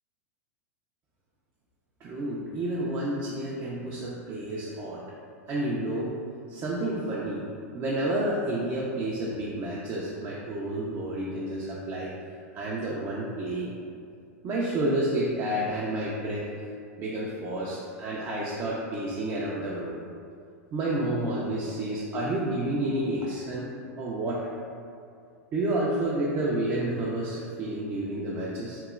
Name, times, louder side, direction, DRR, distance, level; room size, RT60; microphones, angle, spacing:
voice 1, 2.0-5.0 5.5-6.1 6.5-7.5 7.7-12.1 12.5-13.7 14.4-16.5 17.0-20.0 20.7-23.7 24.0-24.5 25.5-28.8, right 1 dB, 30° right, -5 dB, 0.3 m, -30 dB
3.0 x 2.1 x 2.4 m, 2.3 s
hypercardioid pair, 110°, 9 cm